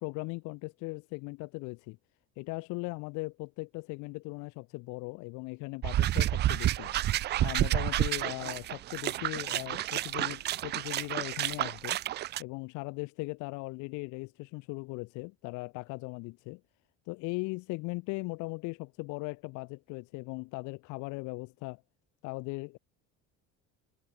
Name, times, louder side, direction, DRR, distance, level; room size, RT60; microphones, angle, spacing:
voice 1, 0.0-2.0 2.4-6.9 7.4-12.0 12.4-16.6 17.1-21.8 22.2-22.8, left 26 dB, 75° left, 1.2 m, -39 dB
sound 1, 5.8-12.4, right 14 dB, 35° right, 0.4 m, -30 dB
cardioid pair, 140°, 30 cm